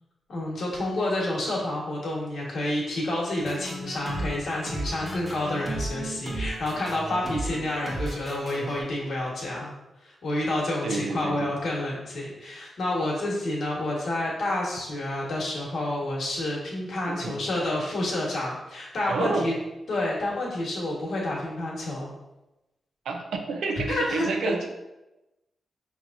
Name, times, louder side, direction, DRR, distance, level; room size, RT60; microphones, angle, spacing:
voice 1, 0.3-9.7 10.0-19.5 19.9-22.1 23.9-24.5, left 1 dB, 70° left, -3 dB, 1.3 m, -29 dB
sound 1, 3.4-8.8, right 1 dB, 25° right, 1.0 m, -35 dB
voice 2, 10.8-11.5 17.1-17.3 19.1-19.5 23.0-24.7, right 4 dB, 90° right, 3 dB, 0.5 m, -29 dB
5.4 x 3.0 x 2.5 m, 0.99 s
cardioid pair, 95°, 0 cm